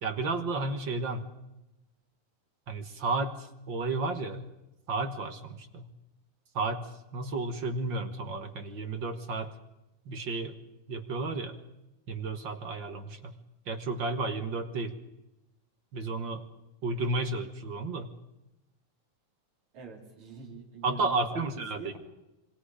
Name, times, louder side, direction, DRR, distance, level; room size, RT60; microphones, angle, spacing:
voice 1, 0.0-1.2 2.7-4.4 4.9-5.9 6.5-9.5 10.1-10.6 10.9-11.6 12.1-13.3 13.7-14.9 15.9-16.5 16.8-18.1 20.8-22.0, right 3 dB, 45° right, 7 dB, 1.7 m, -32 dB
voice 2, 19.7-21.4 21.8-22.0, right 5 dB, 60° right, 1 dB, 5.2 m, -45 dB
27.5 x 24.0 x 5.0 m, 0.94 s
omnidirectional pair, 3.6 m